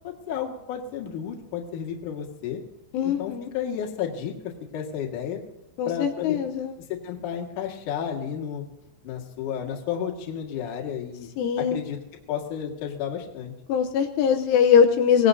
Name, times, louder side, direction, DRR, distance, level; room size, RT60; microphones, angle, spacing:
voice 1, 0.0-2.6 3.0-5.4 5.9-6.4 6.9-8.6 9.0-11.3 11.6-12.0 12.3-13.5, left 8 dB, 55° left, 0 dB, 2.7 m, -32 dB
voice 2, 2.9-3.5 5.8-6.8 11.4-11.8 13.7-15.3, left 7 dB, 80° left, 4 dB, 3.3 m, -21 dB
25.0 x 18.0 x 2.8 m, 0.90 s
omnidirectional pair, 5.7 m